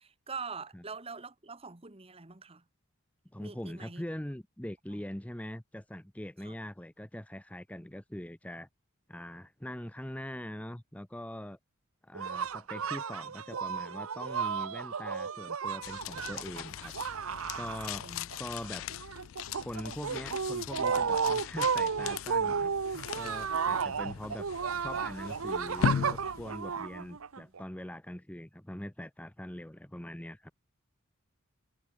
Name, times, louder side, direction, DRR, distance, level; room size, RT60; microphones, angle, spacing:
voice 1, 0.0-2.6 3.4-4.0 4.9-5.0 6.4-6.6 18.0-18.3 18.9-19.0 23.6-23.7 27.0-27.2 27.4-27.5, right 5 dB, 25° right, 1.5 m, -44 dB
voice 2, 3.3-8.7 9.1-11.6 12.0-17.3 17.5-18.1 18.4-18.9 19.6-24.5 24.8-30.5, left 1 dB, 5° left, 0.7 m, -42 dB
sound 1, 12.1-18.4 18.6-27.6, right 6 dB, 85° right, 0.8 m, -33 dB
sound 2, 15.8-27.2, left 8 dB, 70° left, 0.3 m, -39 dB
head